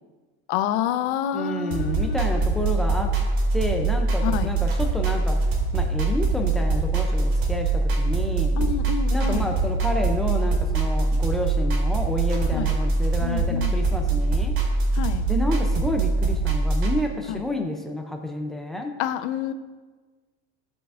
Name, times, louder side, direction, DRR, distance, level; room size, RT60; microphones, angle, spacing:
voice 1, 0.5-2.2 4.2-4.5 8.6-9.5 12.5-12.7 13.2-13.8 15.0-15.3 17.3-17.4 19.0-19.5, left 10 dB, 75° left, 10 dB, 0.7 m, -28 dB
voice 2, 1.3-3.2 3.5-5.4 5.7-8.6 9.1-14.6 15.3-18.9, left 1 dB, ahead, 3 dB, 0.4 m, -29 dB
sound 1, 1.7-16.9, right 3 dB, 70° right, 2.3 m, -23 dB
16.0 x 5.8 x 2.4 m, 1.4 s
cardioid pair, 175°, 33 cm